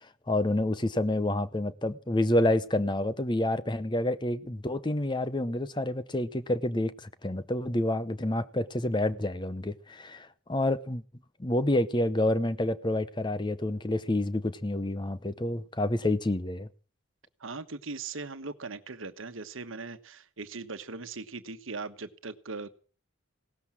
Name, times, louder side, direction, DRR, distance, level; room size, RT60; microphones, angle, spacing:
voice 1, 0.3-11.0 11.4-16.7, left 1 dB, 20° left, 0.8 m, -28 dB
voice 2, 17.4-22.7, right 3 dB, 70° right, 1.2 m, -39 dB
17.5 x 13.0 x 6.2 m
head